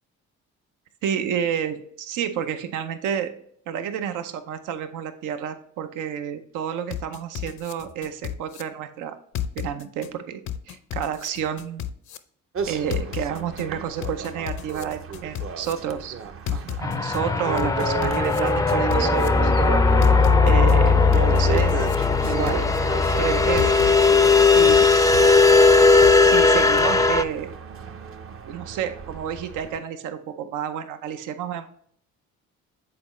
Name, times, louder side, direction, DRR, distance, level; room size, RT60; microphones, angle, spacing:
voice 1, 1.0-3.3 3.7-9.2 9.6-10.4 10.7-11.9 12.7-16.1 16.5-19.5 20.4-21.9 22.2-22.7 23.2-23.7 24.3-24.8 25.9-27.5 28.4-31.7, right 8 dB, 90° right, 9 dB, 0.7 m, -30 dB
sound 1, 6.9-8.6 9.3-10.1 10.5-12.2 12.9-13.6 14.0-15.7 16.5-17.2 17.6-19.3 20.0-20.7 21.1-22.8 23.6-24.3 24.7-26.1, left 10 dB, 70° left, 0.6 m, -32 dB
sound 2, 12.6-29.8, right 5 dB, 45° right, 0.6 m, -34 dB
sound 3, 16.8-27.2, left 4 dB, 10° left, 0.4 m, -18 dB
7.7 x 4.0 x 3.1 m, 0.63 s
cardioid pair, 90°, 30 cm